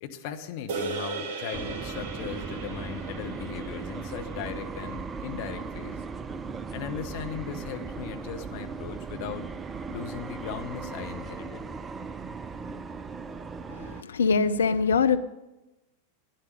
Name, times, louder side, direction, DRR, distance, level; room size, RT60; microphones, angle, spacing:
voice 1, 0.0-6.0 6.7-9.5 9.9-11.7, left 9 dB, 50° left, 6 dB, 1.1 m, -38 dB
sound 1, 0.7-5.2, right 4 dB, 40° right, 2.8 m, -37 dB
sound 2, 1.5-14.0, right 5 dB, 20° right, 0.5 m, -37 dB
voice 2, 13.7-15.2, left 5 dB, 70° left, 11 dB, 0.6 m, -23 dB
12.0 x 10.5 x 6.7 m, 1.0 s
figure-of-eight pair, 90°, 0 cm